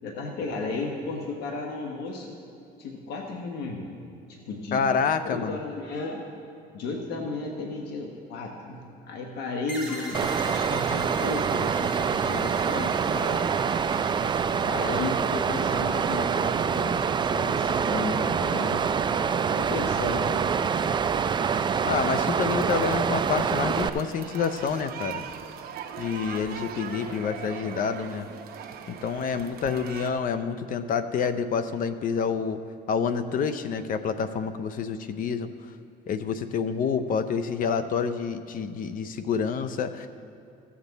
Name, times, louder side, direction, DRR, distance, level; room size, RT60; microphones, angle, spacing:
voice 1, 0.0-2.4 2.8-3.9 4.3-4.8 5.2-6.2 6.7-13.5 13.8-14.1 14.6-18.8 19.6-20.4, left 3 dB, 75° left, 1 dB, 1.1 m, -34 dB
voice 2, 4.7-5.6 21.8-25.3 26.0-28.3 28.9-32.6 32.9-35.5 36.1-40.1, left 6 dB, 55° left, 11 dB, 0.6 m, -28 dB
sound 1, 9.7-16.9, equal, ahead, 2.6 m, -43 dB
Water, 10.1-23.9, right 6 dB, 25° right, 0.4 m, -25 dB
sound 2, 22.1-30.1, right 8 dB, 65° right, 0.8 m, -40 dB
14.5 x 7.3 x 4.0 m, 2.7 s
cardioid pair, 110°, 17 cm